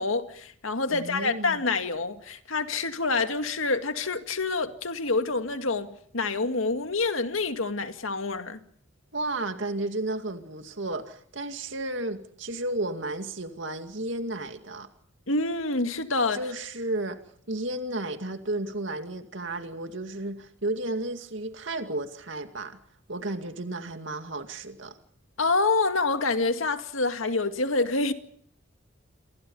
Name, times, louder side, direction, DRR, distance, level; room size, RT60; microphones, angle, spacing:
voice 1, 0.0-8.6 15.3-16.4 25.4-28.1, left 3 dB, 90° left, 2.2 m, -27 dB
voice 2, 0.9-1.6 9.1-14.9 16.3-17.2 17.5-22.8 23.1-25.0, right 2 dB, 70° right, 2.3 m, -33 dB
29.5 x 23.0 x 5.5 m
head